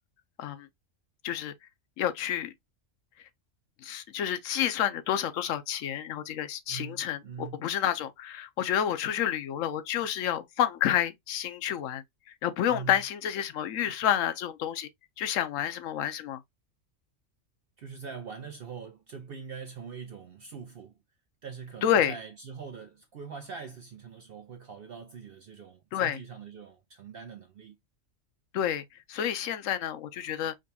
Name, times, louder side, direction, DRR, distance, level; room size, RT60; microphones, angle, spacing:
voice 1, 2.0-2.5 3.8-14.9 15.2-16.4 21.8-22.1 25.9-26.2 28.5-30.5, left 10 dB, 85° left, 1.0 m, -29 dB
voice 2, 6.7-7.6 12.7-13.0 17.8-21.0 21.4-27.8, right 6 dB, 60° right, 0.7 m, -43 dB
5.0 x 2.3 x 2.7 m
omnidirectional pair, 1.3 m